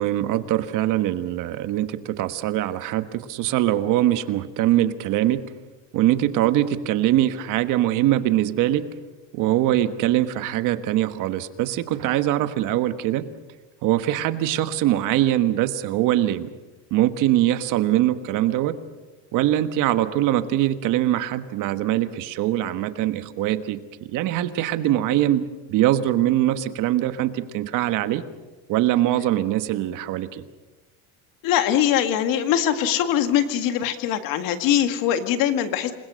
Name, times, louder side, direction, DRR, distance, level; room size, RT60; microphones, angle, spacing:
voice 1, 0.0-5.4 5.9-8.8 9.3-13.3 13.8-16.5 16.9-18.8 19.3-28.2 28.7-30.4, right 13 dB, 55° right, 11 dB, 1.4 m, -22 dB
voice 2, 31.4-35.9, left 10 dB, 60° left, 8 dB, 2.0 m, -22 dB
28.0 x 21.0 x 6.4 m, 1.2 s
cardioid pair, 145°, 37 cm